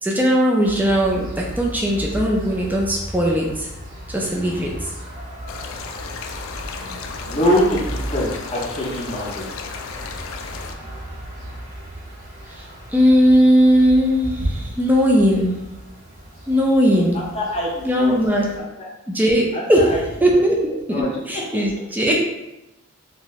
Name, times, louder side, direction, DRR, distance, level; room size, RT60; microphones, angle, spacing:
voice 1, 0.0-3.7 4.1-4.9 6.8-7.0 12.6-12.7 12.9-15.5 16.5-17.2 17.8-18.6 19.1-22.2, equal, 10° right, -1 dB, 0.4 m, -18 dB
sound 1, 0.6-18.6, right 1 dB, 40° right, 0.8 m, -35 dB
sound 2, 5.5-10.7, left 5 dB, 70° left, 0.3 m, -35 dB
voice 2, 7.3-7.8 8.1-9.5 16.9-17.0 17.3-18.1 18.8-18.9 19.5-19.6 19.9-20.0 20.9-21.1 21.5-21.8, equal, 30° left, -3 dB, 0.7 m, -23 dB
2.7 x 2.5 x 3.0 m, 0.97 s
head